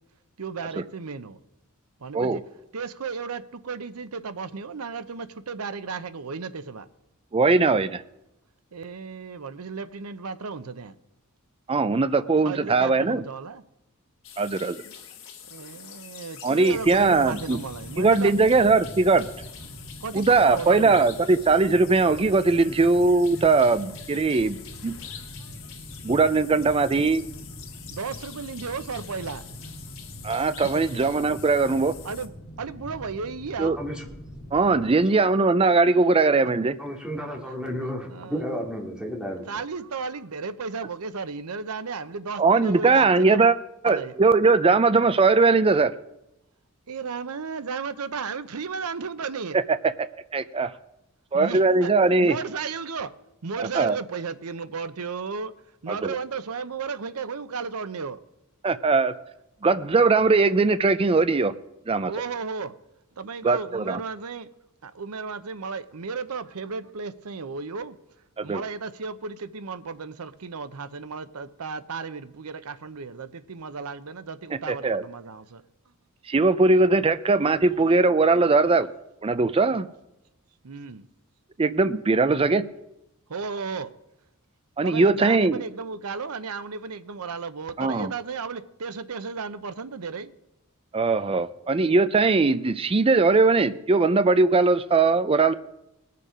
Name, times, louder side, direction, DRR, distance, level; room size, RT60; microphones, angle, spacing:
voice 1, 0.4-1.4 2.0-2.4 2.7-6.9 8.7-10.9 12.4-13.6 15.5-18.3 20.0-21.0 25.4-25.6 27.9-29.5 30.7-30.8 32.0-33.8 38.1-38.4 39.5-43.5 43.8-44.1 46.9-49.6 51.3-51.9 52.2-53.2 53.4-55.5 55.8-58.2 62.0-62.7 63.2-64.5 64.8-68.0 68.4-75.6 80.6-81.1 83.3-83.9 84.8-90.3, right 5 dB, 85° right, 0.7 m, -34 dB
voice 2, 7.3-8.0 11.7-13.2 14.4-14.8 16.4-17.6 18.0-19.3 20.1-24.9 26.0-27.3 30.2-31.9 33.6-33.8 34.5-36.8 42.4-43.6 43.8-45.9 49.8-50.1 50.3-50.7 51.3-52.4 53.6-54.0 55.9-56.1 58.6-59.1 59.6-61.5 61.9-62.1 63.4-64.0 68.4-68.6 74.5-75.0 76.3-78.9 79.2-79.9 81.6-82.6 84.8-85.6 87.8-88.1 90.9-95.5, right 3 dB, 25° right, 0.4 m, -20 dB
sound 1, 14.2-32.3, left 8 dB, 65° left, 1.6 m, -45 dB
sound 2, 16.7-34.9, equal, 45° left, 1.7 m, -43 dB
voice 3, 36.8-39.4, equal, 5° right, 2.3 m, -32 dB
20.0 x 6.8 x 5.0 m
head